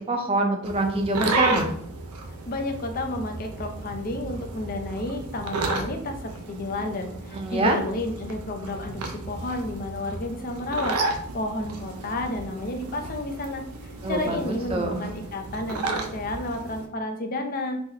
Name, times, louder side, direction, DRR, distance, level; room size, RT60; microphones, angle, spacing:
voice 1, 0.1-1.7 7.3-7.8 14.0-15.0, right 2 dB, 25° right, 3 dB, 0.4 m, -25 dB
sound 1, 0.6-16.9, right 3 dB, 90° right, 0.5 m, -33 dB
voice 2, 2.5-11.0 11.3-13.6 14.1-17.8, left 2 dB, 40° left, 5 dB, 0.4 m, -31 dB
2.9 x 2.0 x 3.7 m, 0.68 s
head